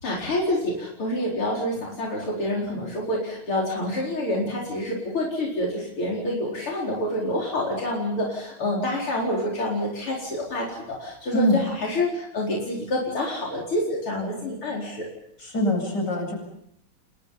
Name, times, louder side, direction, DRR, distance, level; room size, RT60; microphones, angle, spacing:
voice 1, 0.0-15.1, left 1 dB, 85° left, -3 dB, 5.4 m, -27 dB
voice 2, 11.3-11.7 15.4-16.3, equal, 55° left, 2 dB, 8.8 m, -23 dB
29.5 x 24.0 x 5.6 m, 0.74 s
omnidirectional pair, 2.3 m